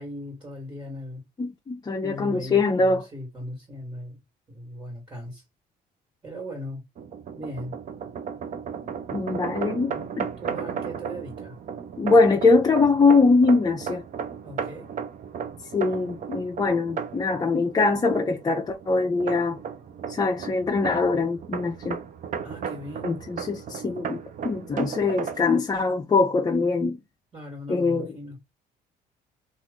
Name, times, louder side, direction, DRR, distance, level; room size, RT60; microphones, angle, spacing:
voice 1, 0.0-1.2 2.0-4.2 4.5-5.4 6.2-6.8 7.3-7.7 9.3-10.1 10.4-11.6 14.4-14.9 22.4-23.2 27.3-28.4, equal, 25° right, 1.7 m, -38 dB
voice 2, 1.4-3.0 9.1-9.9 10.2-10.3 12.0-14.0 15.7-19.6 20.1-22.0 23.0-27.0 27.7-28.1, left 3 dB, 25° left, 0.6 m, -22 dB
sound 1, 7.0-25.4, right 7 dB, 50° right, 0.7 m, -35 dB
3.0 x 2.5 x 3.5 m
cardioid pair, 110°, 17 cm